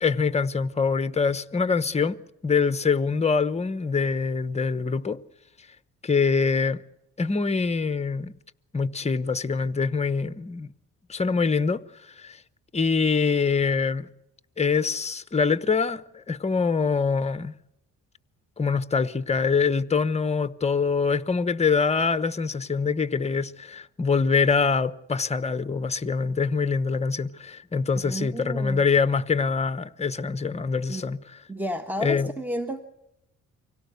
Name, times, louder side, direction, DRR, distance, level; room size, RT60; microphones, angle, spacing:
voice 1, 0.0-2.2 2.4-5.2 6.0-6.8 7.2-8.3 8.7-10.7 11.1-12.4 12.7-14.1 14.6-17.5 18.6-31.2 32.0-32.3, left 5 dB, 20° left, 1.0 m, -24 dB
voice 2, 27.9-28.8 30.9-31.0 31.5-32.8, equal, 5° right, 1.4 m, -31 dB
25.0 x 17.5 x 8.2 m
cardioid pair, 90°, 30 cm